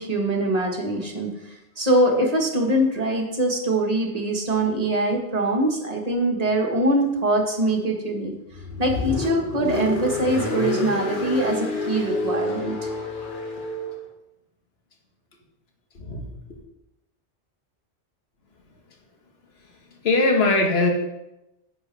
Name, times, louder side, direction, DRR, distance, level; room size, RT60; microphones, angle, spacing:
voice 1, 0.0-8.3 8.8-12.9, right 1 dB, 35° right, 0 dB, 1.5 m, -23 dB
Car, 8.5-13.9, left 2 dB, 50° left, 1.4 m, -28 dB
voice 2, 15.9-16.3 20.0-20.9, left 2 dB, 65° left, 2 dB, 1.6 m, -20 dB
10.0 x 7.9 x 3.3 m, 0.93 s
omnidirectional pair, 1.1 m